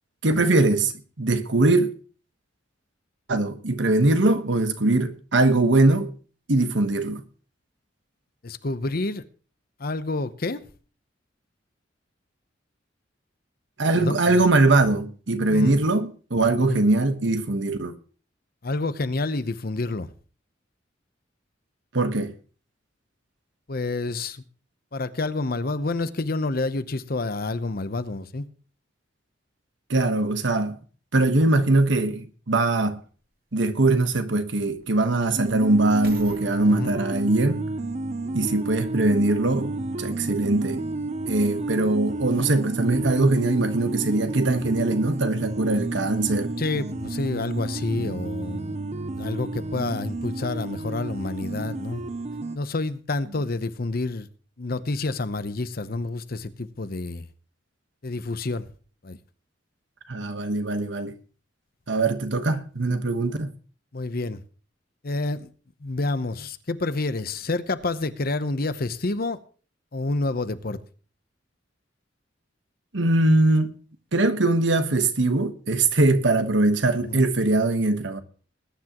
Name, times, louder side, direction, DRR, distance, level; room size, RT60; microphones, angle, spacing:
voice 1, 0.2-1.9 3.3-6.1 6.5-7.2 13.8-17.9 21.9-22.3 29.9-30.8 31.1-33.0 33.5-37.6 38.3-40.8 41.3-46.5 60.1-61.1 61.9-63.5 72.9-73.7 74.1-78.2, right 2 dB, 75° right, 1.2 m, -21 dB
voice 2, 8.4-9.2 9.8-10.6 13.9-14.4 15.5-15.7 16.6-16.8 18.6-20.1 23.7-24.4 24.9-28.4 36.7-36.9 46.6-48.7 49.1-52.0 52.5-54.3 54.6-57.3 58.0-58.7 59.0-59.2 63.9-64.4 65.0-65.5 65.8-69.4 69.9-70.8 77.1-77.3, left 2 dB, 50° left, 0.8 m, -28 dB
sound 1, 33.0-33.1 33.8-39.1 39.8-39.9, right 3 dB, 50° right, 2.4 m, -47 dB
sound 2, 35.4-52.6, right 2 dB, 35° right, 0.6 m, -31 dB
20.5 x 10.0 x 3.0 m
head